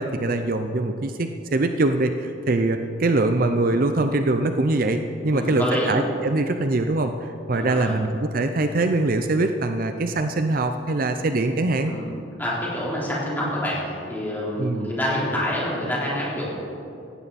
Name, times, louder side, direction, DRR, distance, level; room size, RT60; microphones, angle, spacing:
voice 1, 0.0-11.9 14.6-14.9, right 2 dB, 45° right, 7 dB, 0.6 m, -23 dB
voice 2, 5.3-6.0 7.5-8.0 11.9-12.1 12.4-16.6, equal, 10° left, -7 dB, 3.9 m, -27 dB
17.5 x 15.0 x 4.2 m, 2.7 s
head